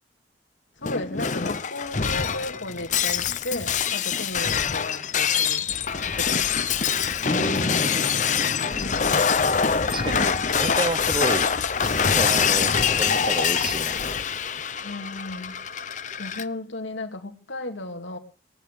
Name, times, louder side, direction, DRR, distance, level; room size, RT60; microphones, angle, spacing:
voice 1, 0.8-5.7 6.1-6.5 8.7-9.2 14.8-15.6 16.2-18.2, left 2 dB, 85° left, 4 dB, 2.7 m, -35 dB
Shatter, 0.8-16.4, left 6 dB, 40° left, 0.7 m, -24 dB
voice 2, 7.2-7.9 8.3-8.5 9.1-9.3 9.9-11.5 11.8-14.2, right 2 dB, 25° right, 12 dB, 0.7 m, -31 dB
19.5 x 9.8 x 6.6 m, 0.38 s
head